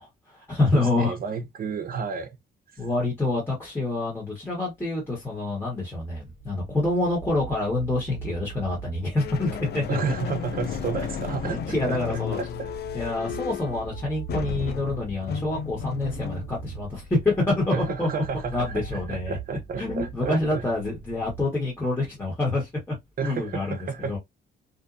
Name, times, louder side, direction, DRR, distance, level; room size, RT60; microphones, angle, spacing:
voice 1, 0.0-1.2 2.8-10.0 11.6-12.4 12.9-18.1 18.5-19.4 19.8-22.9 23.2-23.8 24.1-24.2, left 2 dB, 10° left, 1.2 m, -27 dB
voice 2, 0.7-2.4 2.7-2.9 9.9-11.6 11.9-12.7 17.7-20.6 23.2-24.2, right 6 dB, 45° right, 0.6 m, -31 dB
sound 1, 5.2-21.4, right 8 dB, 70° left, 1.3 m, -41 dB
sound 2, 9.2-19.3, left 8 dB, 55° left, 0.4 m, -35 dB
2.6 x 2.2 x 2.4 m
cardioid pair, 90°, 20 cm